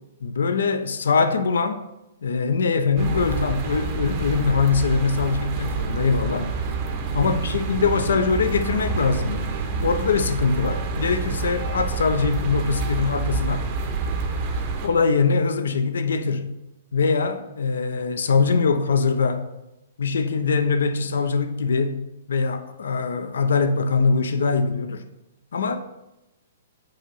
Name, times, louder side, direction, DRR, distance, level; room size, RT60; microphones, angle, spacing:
voice 1, 0.2-1.8 2.2-6.5 7.1-9.5 9.8-13.7 14.8-16.6 16.9-19.5 20.0-25.0 25.5-25.8, left 4 dB, 75° left, 0.5 m, -22 dB
sound 1, 3.0-14.9, right 4 dB, 40° right, 0.9 m, -28 dB
7.6 x 2.6 x 4.8 m
hypercardioid pair, 125°, 0 cm